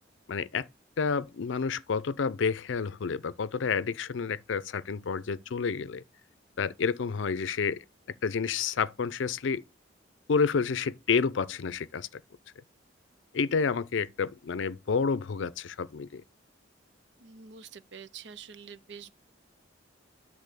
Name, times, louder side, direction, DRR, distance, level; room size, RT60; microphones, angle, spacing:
voice 1, 0.3-0.7 1.0-6.0 6.6-7.8 8.2-9.6 10.3-12.2 13.3-16.2, left 5 dB, 80° left, 0.5 m, -29 dB
voice 2, 17.2-19.1, right 6 dB, 65° right, 0.6 m, -46 dB
10.5 x 3.6 x 6.6 m
head